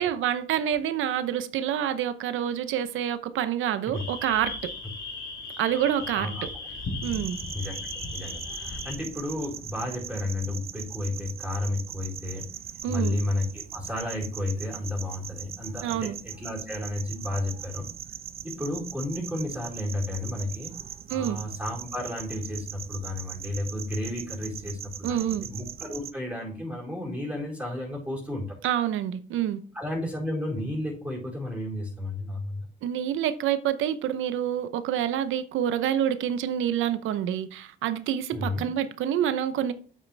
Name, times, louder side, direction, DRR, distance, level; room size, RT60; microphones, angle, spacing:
voice 1, 0.0-4.7 5.6-6.3 7.0-7.4 12.8-13.2 15.8-16.2 21.1-21.4 25.0-25.5 28.6-29.6 32.8-39.7, right 10 dB, 85° right, 0.8 m, -27 dB
sound 1, 3.9-8.9, left 3 dB, 65° left, 3.5 m, -37 dB
voice 2, 6.1-6.5 7.5-7.8 8.1-12.5 12.9-17.9 18.4-20.7 21.1-28.5 29.7-32.7 38.3-38.6, left 1 dB, 5° right, 4.5 m, -32 dB
sound 2, 7.0-26.1, right 9 dB, 50° right, 0.7 m, -40 dB
8.7 x 7.5 x 3.4 m
cardioid pair, 90°, 20 cm